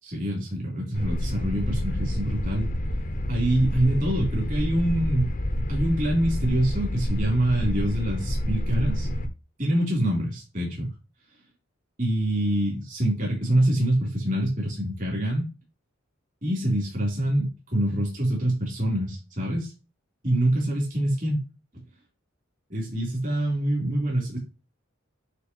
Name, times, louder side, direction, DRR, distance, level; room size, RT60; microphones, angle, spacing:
voice 1, 0.0-2.7 3.3-5.3 5.7-9.1 9.6-10.9 12.0-15.4 16.4-19.7 20.2-21.4 22.7-24.4, right 1 dB, 40° right, -2 dB, 3.7 m, -25 dB
sound 1, 0.9-9.3, equal, 40° left, 0.9 m, -28 dB
9.9 x 3.6 x 3.1 m, 0.28 s
head